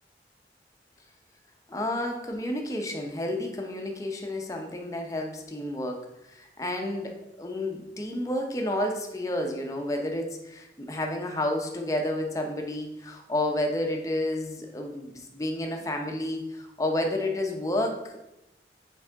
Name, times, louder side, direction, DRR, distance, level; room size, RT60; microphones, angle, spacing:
voice 1, 1.7-18.3, left 1 dB, 20° left, 2 dB, 0.7 m, -31 dB
6.3 x 4.8 x 3.5 m, 0.89 s
head